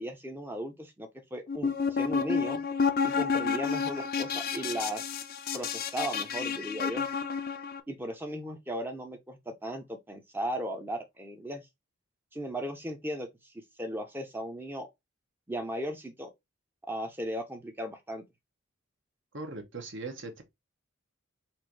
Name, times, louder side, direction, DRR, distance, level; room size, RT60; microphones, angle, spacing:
voice 1, 0.0-2.6 3.0-5.0 5.5-7.1 7.9-11.6 12.3-13.3 13.8-14.9 15.5-16.3 16.9-18.2, equal, 10° right, 0.6 m, -36 dB
sound 1, 1.5-7.8, left 6 dB, 45° left, 0.5 m, -30 dB
voice 2, 19.3-20.4, right 3 dB, 55° right, 1.0 m, -39 dB
4.3 x 2.6 x 4.6 m
head